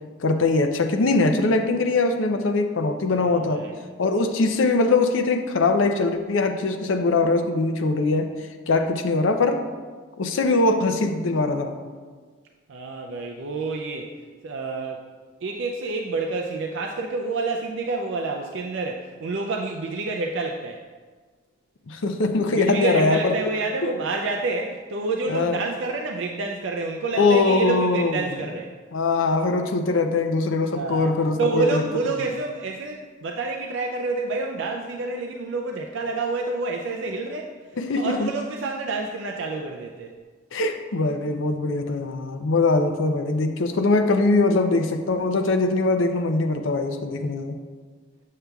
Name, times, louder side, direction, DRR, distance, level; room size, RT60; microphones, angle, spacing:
voice 1, 0.2-3.6 4.0-8.3 8.7-9.6 10.2-11.8 21.9-23.3 23.8-23.9 25.3-25.6 27.2-28.4 28.9-31.8 37.8-38.3 40.5-47.6, left 3 dB, 75° left, 6 dB, 0.5 m, -22 dB
voice 2, 3.2-3.7 12.7-14.1 14.4-15.1 15.4-20.8 22.5-28.7 30.7-31.1 31.4-37.5 38.0-40.2, right 3 dB, 65° right, 1 dB, 0.4 m, -28 dB
7.3 x 6.6 x 2.3 m, 1.5 s
head